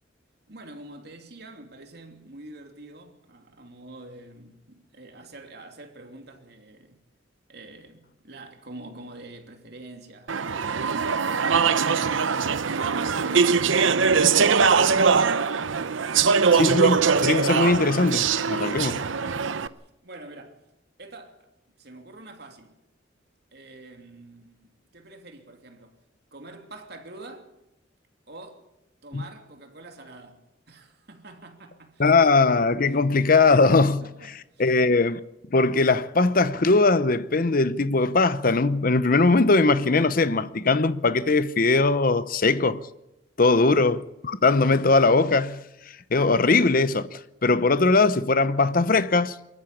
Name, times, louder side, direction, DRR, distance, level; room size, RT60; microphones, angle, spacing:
voice 1, 0.5-7.0 7.5-16.7 18.6-19.7 20.0-20.6 21.0-21.5 21.8-22.8 23.5-26.0 26.3-27.5 28.3-28.7 29.0-32.2 32.9-33.0 33.8-34.8 43.4-43.8, right 2 dB, 60° right, 3.0 m, -45 dB
Speech / Chatter, 10.3-19.7, right 5 dB, 90° right, 0.8 m, -22 dB
voice 2, 16.5-19.0 29.1-29.2 32.0-34.0 34.6-35.2 35.5-42.8 43.4-45.6 46.1-49.3, left 3 dB, 50° left, 0.8 m, -20 dB
24.0 x 13.5 x 8.6 m
head